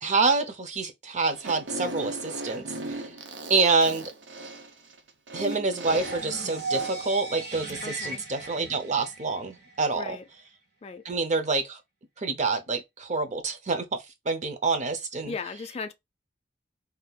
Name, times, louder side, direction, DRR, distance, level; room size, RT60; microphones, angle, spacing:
voice 1, 0.0-3.1 3.5-4.1 5.3-10.2 11.0-11.8 12.2-15.3, right 4 dB, 40° right, 0.6 m, -27 dB
Fart, 1.3-7.1, right 2 dB, 80° right, 0.7 m, -37 dB
sound 1, 5.9-9.8, right 3 dB, 55° right, 1.6 m, -36 dB
voice 2, 7.8-8.2 9.9-10.2 10.8-11.0 15.3-15.9, left 4 dB, 35° left, 0.4 m, -37 dB
2.8 x 2.3 x 3.8 m
head